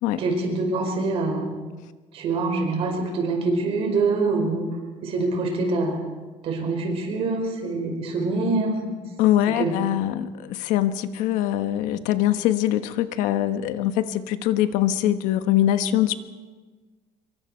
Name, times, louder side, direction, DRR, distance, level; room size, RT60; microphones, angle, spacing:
voice 1, 0.2-1.5 2.1-4.6 5.0-6.0 6.4-9.0 9.6-9.7, right 3 dB, 50° right, 3 dB, 5.1 m, -25 dB
voice 2, 9.2-16.1, left 12 dB, 90° left, 9 dB, 1.3 m, -23 dB
26.0 x 23.0 x 4.5 m, 1.3 s
cardioid pair, 160°, 13 cm